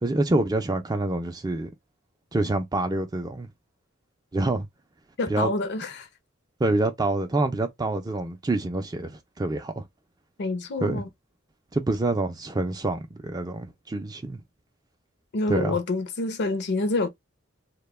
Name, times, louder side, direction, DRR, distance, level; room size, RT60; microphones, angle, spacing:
voice 1, 0.0-1.7 2.3-3.5 4.3-4.7 5.3-5.5 6.6-9.8 10.8-11.0 11.7-14.4 15.5-15.8, right 2 dB, 20° right, 0.4 m, -26 dB
voice 2, 5.2-6.1 10.4-11.1 15.3-17.1, left 2 dB, 55° left, 0.5 m, -27 dB
2.2 x 2.1 x 3.1 m
head